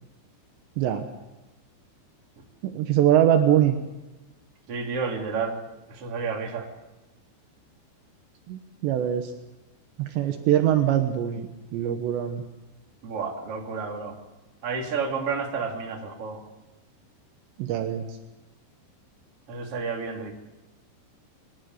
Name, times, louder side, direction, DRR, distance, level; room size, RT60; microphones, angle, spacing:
voice 1, 0.8-1.1 2.6-3.8 8.5-9.3 10.0-12.4 17.6-18.1, right 11 dB, 75° right, 6 dB, 3.2 m, -23 dB
voice 2, 4.7-5.6 5.9-6.7 13.0-14.2 14.6-16.4 19.5-20.3, right 5 dB, 35° right, 1 dB, 3.1 m, -30 dB
26.0 x 12.0 x 9.3 m, 1.0 s
omnidirectional pair, 5.4 m